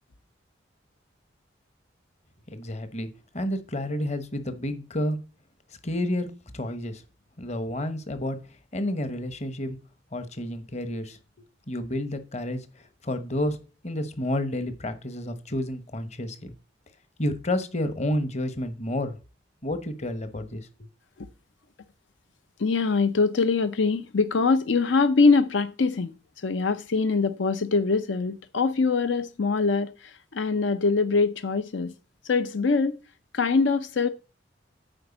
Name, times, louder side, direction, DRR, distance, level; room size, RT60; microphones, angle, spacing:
voice 1, 2.5-3.1 3.3-5.2 5.8-6.3 6.5-7.0 7.4-8.4 8.7-9.8 10.1-11.2 11.7-12.7 13.0-13.6 13.8-16.5 17.2-19.2 19.6-20.7, left 1 dB, 35° left, 1.0 m, -30 dB
voice 2, 22.6-26.1 26.4-31.9 32.2-33.0 33.3-34.1, left 4 dB, 75° left, 0.6 m, -23 dB
9.1 x 4.5 x 7.0 m
head